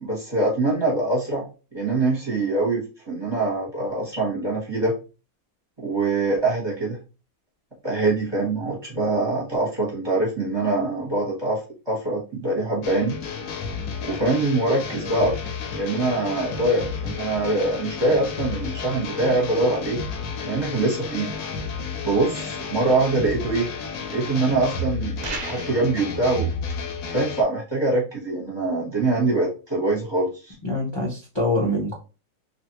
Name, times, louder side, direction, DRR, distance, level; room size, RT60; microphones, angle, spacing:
voice 1, 0.0-4.9 5.8-7.0 7.8-13.1 14.0-15.4 15.7-20.0 20.4-21.3 22.0-23.7 24.1-26.5 27.1-30.5, right 2 dB, 20° right, -2 dB, 0.8 m, -24 dB
sound 1, 12.8-27.4, left 4 dB, 75° left, 1.0 m, -32 dB
sound 2, 25.2-25.9, right 3 dB, 55° right, 0.4 m, -33 dB
voice 2, 30.6-31.9, left 1 dB, 40° left, -4 dB, 0.4 m, -24 dB
2.7 x 2.5 x 2.8 m, 0.33 s
omnidirectional pair, 1.5 m